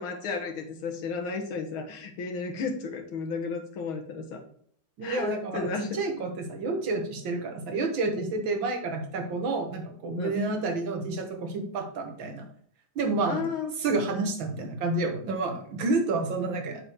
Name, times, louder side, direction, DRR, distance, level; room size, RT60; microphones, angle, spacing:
voice 1, 0.0-4.4 5.0-6.0 10.2-10.4 13.3-13.7, left 4 dB, 85° left, 3 dB, 2.2 m, -33 dB
voice 2, 5.0-12.5 13.0-13.4 13.8-16.9, right 3 dB, 70° right, 4 dB, 2.1 m, -29 dB
7.3 x 4.8 x 4.6 m, 0.62 s
omnidirectional pair, 2.2 m